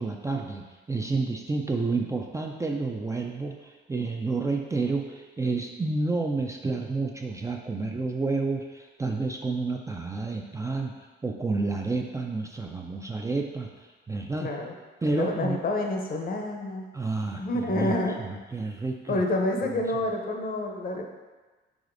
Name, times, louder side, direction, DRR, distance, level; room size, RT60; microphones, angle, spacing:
voice 1, 0.0-10.9 11.2-14.5 15.0-15.6 16.9-17.4 17.7-17.9 18.2-19.2, right 3 dB, 15° right, 1 dB, 0.3 m, -30 dB
voice 2, 14.4-14.7 15.1-16.8 17.4-18.2 19.1-21.1, left 2 dB, 50° left, 3 dB, 0.7 m, -28 dB
4.9 x 4.0 x 2.5 m, 1.3 s
cardioid pair, 90°, 20 cm